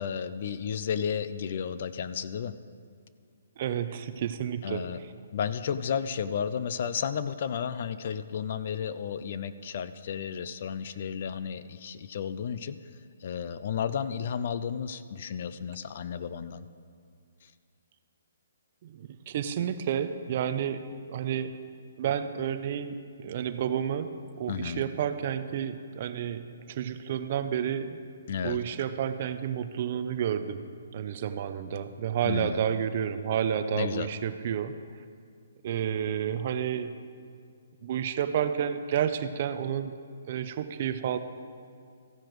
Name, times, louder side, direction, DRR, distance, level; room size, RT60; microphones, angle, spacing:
voice 1, 0.0-2.6 4.6-5.0 5.3-12.8 13.2-16.7 24.5-24.8 28.3-28.6 32.2-32.6 33.7-34.1, left 7 dB, 40° left, 13 dB, 0.3 m, -33 dB
voice 2, 3.6-5.1 18.8-21.6 22.0-28.0 28.4-30.7 30.9-34.8 35.6-36.9 37.8-39.9 40.3-41.2, right 9 dB, 35° right, 11 dB, 0.4 m, -30 dB
14.5 x 9.8 x 3.1 m, 2.2 s
hypercardioid pair, 170°, 0 cm